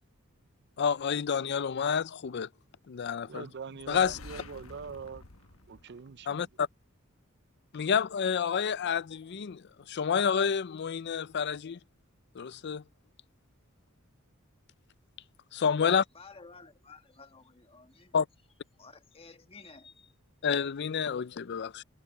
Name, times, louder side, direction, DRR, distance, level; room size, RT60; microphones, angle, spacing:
voice 1, 0.8-2.5 2.9-3.4 3.9-4.2 6.3-6.7 7.7-11.8 12.4-12.8 15.5-16.0 18.1-18.3 20.4-21.8, left 7 dB, 55° left, 0.5 m, -29 dB
voice 2, 3.3-5.3 5.7-6.5, right 5 dB, 55° right, 0.6 m, -43 dB
sound 1, 3.8-6.6, left 3 dB, 80° left, 1.3 m, -50 dB
voice 3, 16.1-18.2 18.8-20.1, left 4 dB, 30° left, 1.6 m, -53 dB
head